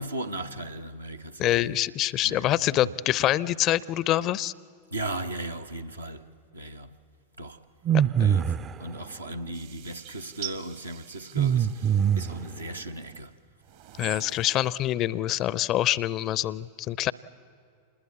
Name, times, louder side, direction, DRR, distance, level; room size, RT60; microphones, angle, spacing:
voice 1, 0.0-1.8 2.2-2.5 4.9-6.3 6.5-7.0 7.4-7.6 8.2-8.5 8.8-13.3, right 1 dB, 80° right, 1.0 m, -37 dB
voice 2, 1.4-4.5 14.0-17.1, left 13 dB, 35° left, 0.5 m, -25 dB
sound 1, 7.9-8.8 11.3-12.5, right 9 dB, 25° right, 0.5 m, -23 dB
sound 2, 9.5-13.0 13.6-14.7, right 11 dB, 55° right, 1.3 m, -44 dB
27.0 x 20.5 x 8.3 m
figure-of-eight pair, 90°, 0 cm